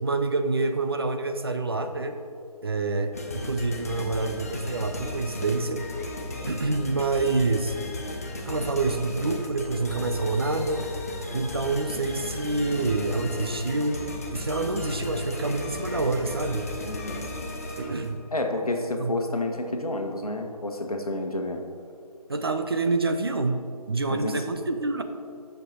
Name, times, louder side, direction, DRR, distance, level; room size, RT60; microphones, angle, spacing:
voice 1, 0.0-2.2 2.6-5.8 6.4-7.8 8.5-10.8 11.3-16.7 17.8-18.2 19.0-19.2 22.3-23.6 23.9-25.0, right 3 dB, 40° right, 7 dB, 0.5 m, -27 dB
sound 1, 3.1-18.2, left 2 dB, 25° left, 0.5 m, -35 dB
voice 2, 16.9-17.2 18.3-21.6 24.1-24.4, left 2 dB, 65° left, 4 dB, 1.2 m, -30 dB
14.5 x 6.6 x 2.8 m, 2.4 s
figure-of-eight pair, 150°, 20 cm